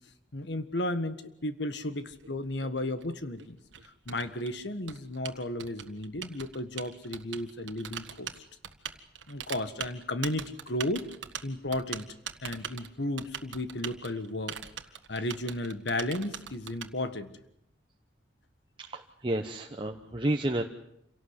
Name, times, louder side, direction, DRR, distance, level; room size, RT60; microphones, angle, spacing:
voice 1, 0.3-3.6 4.0-8.3 9.3-11.1 11.4-12.1 12.4-14.6 15.1-17.3 19.9-20.3, left 1 dB, 65° left, 11 dB, 1.6 m, -34 dB
Typing, 2.0-16.9, right 8 dB, 80° right, 1.5 m, -42 dB
voice 2, 18.8-20.6, right 1 dB, 25° right, 3 dB, 1.0 m, -31 dB
27.5 x 18.0 x 8.1 m, 0.77 s
head